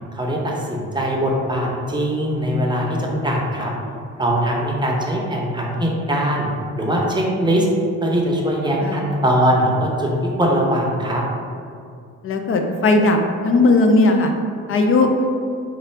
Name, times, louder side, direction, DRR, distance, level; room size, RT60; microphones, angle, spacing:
voice 1, 0.1-3.7 4.2-6.5 6.8-7.7 8.0-10.1 10.4-11.2, equal, 15° right, -2 dB, 0.7 m, -21 dB
voice 2, 12.2-14.3 14.7-15.3, left 2 dB, 45° left, 4 dB, 0.5 m, -17 dB
3.2 x 2.5 x 4.4 m, 2.4 s
cardioid pair, 90°, 30 cm